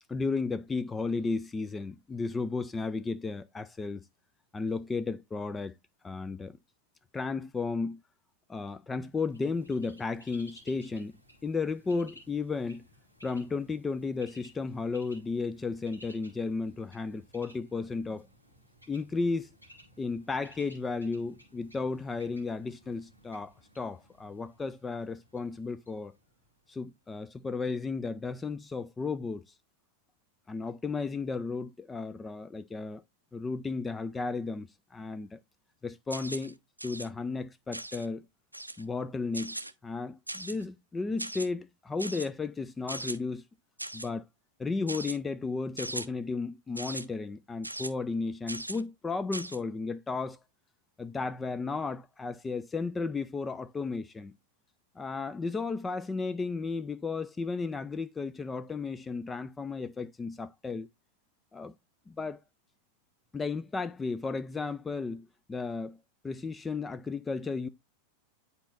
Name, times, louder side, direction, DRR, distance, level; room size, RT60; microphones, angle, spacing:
voice 1, 0.1-4.0 4.5-5.7 6.0-6.6 7.1-8.0 8.5-11.1 11.4-12.9 13.2-18.3 18.9-19.5 20.0-26.1 26.7-29.4 30.5-33.0 33.3-35.4 35.8-36.6 36.8-38.3 38.8-39.6 39.8-43.4 43.9-44.3 44.6-50.4 51.0-54.3 55.0-60.9 61.5-61.7 62.1-62.4 63.3-66.0 66.2-67.7, left 4 dB, 15° left, 0.3 m, -34 dB
Bird, 9.1-26.9, equal, 90° left, 2.1 m, -58 dB
sound 1, 36.1-36.5 36.8-37.1 37.7-38.1 38.5-38.8 39.3-39.7 40.3-40.6 41.2-41.5 42.0-42.3 42.9-43.2 43.8-44.1 44.9-45.2 45.8-46.1 46.8-47.0 47.6-47.9 48.5-48.8 49.3-49.6, right 1 dB, 85° right, 0.4 m, -38 dB
9.8 x 4.0 x 2.4 m
figure-of-eight pair, 90°, 0 cm